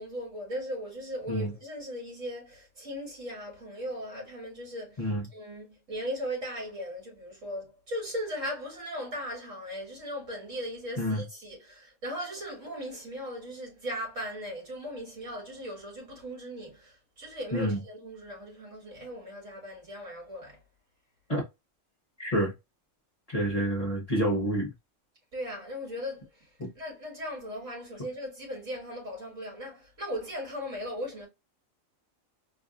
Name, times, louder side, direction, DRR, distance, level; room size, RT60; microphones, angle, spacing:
voice 1, 0.0-20.6 25.3-31.3, equal, 65° right, 2.9 m, -38 dB
voice 2, 22.2-22.5 23.3-24.7 26.6-26.7, equal, 30° left, 1.1 m, -28 dB
4.4 x 2.6 x 2.5 m
omnidirectional pair, 1.4 m